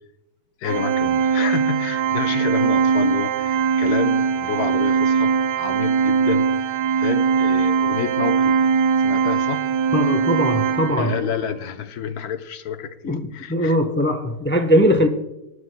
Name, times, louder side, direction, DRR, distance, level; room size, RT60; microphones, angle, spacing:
voice 1, 0.6-8.6 9.0-9.6 10.9-13.8 14.8-15.1, left 8 dB, 75° left, 1.3 m, -29 dB
Organ, 0.6-11.4, right 6 dB, 80° right, 1.2 m, -20 dB
voice 2, 9.9-11.1 13.0-13.2 13.5-15.1, equal, 10° left, 0.5 m, -19 dB
21.0 x 11.0 x 2.2 m
omnidirectional pair, 1.7 m